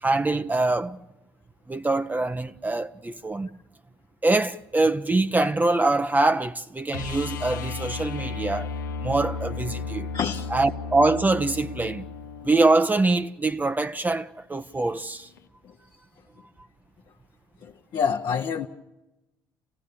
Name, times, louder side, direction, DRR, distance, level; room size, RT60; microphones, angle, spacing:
voice 1, 0.0-1.0 1.7-3.5 4.2-8.7 9.0-10.1 10.5-12.1 12.4-15.3, right 2 dB, 15° right, 0.8 m, -24 dB
sound 1, 6.9-12.9 15.4-15.5, left 4 dB, 85° left, 0.9 m, -34 dB
voice 2, 10.1-10.5 15.6-15.8 17.6-18.7, left 6 dB, 50° left, 1.1 m, -27 dB
28.0 x 17.0 x 6.9 m
hypercardioid pair, 55°, 10 cm